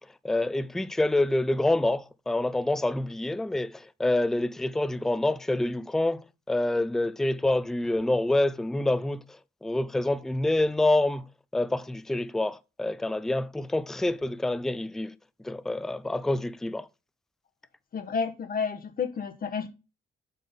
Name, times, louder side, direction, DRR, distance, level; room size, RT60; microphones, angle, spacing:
voice 1, 0.2-9.2 9.6-11.3 11.5-15.1 15.4-16.9, left 2 dB, ahead, 0.4 m, -27 dB
voice 2, 17.9-19.7, left 5 dB, 45° left, 1.1 m, -30 dB
7.6 x 3.8 x 5.5 m
cardioid pair, 90°, 20 cm